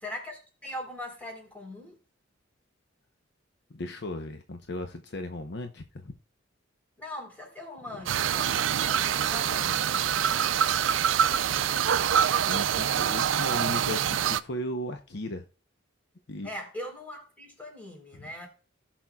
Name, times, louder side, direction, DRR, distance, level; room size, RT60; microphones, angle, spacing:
voice 1, 0.0-2.0 7.0-10.2 16.4-18.5, left 1 dB, 10° left, 3.7 m, -41 dB
voice 2, 3.7-6.1 12.5-15.4 16.3-16.5 18.1-18.3, left 1 dB, 60° left, 0.8 m, -36 dB
sound 1, 8.1-14.4, right 9 dB, 80° right, 0.4 m, -25 dB
17.0 x 6.0 x 2.3 m
head